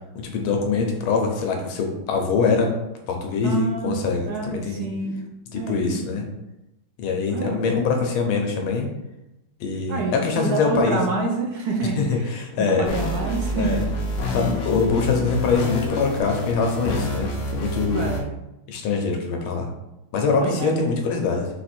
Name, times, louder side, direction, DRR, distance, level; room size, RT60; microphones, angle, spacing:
voice 1, 0.1-2.7 3.1-4.9 5.5-6.2 7.0-8.9 9.6-11.0 12.0-12.9 13.6-13.8 14.3-18.1 18.7-19.7 20.1-21.5, left 4 dB, 80° left, 2 dB, 1.6 m, -23 dB
voice 2, 3.4-4.0 4.3-5.1 5.5-5.8 7.3-7.6 9.9-12.3 12.6-13.8 17.9-18.3 20.4-20.9, right 3 dB, 70° right, 0 dB, 0.9 m, -27 dB
sound 1, 12.9-18.2, left 1 dB, 60° left, 0.9 m, -28 dB
4.5 x 2.6 x 4.2 m, 0.92 s
omnidirectional pair, 2.3 m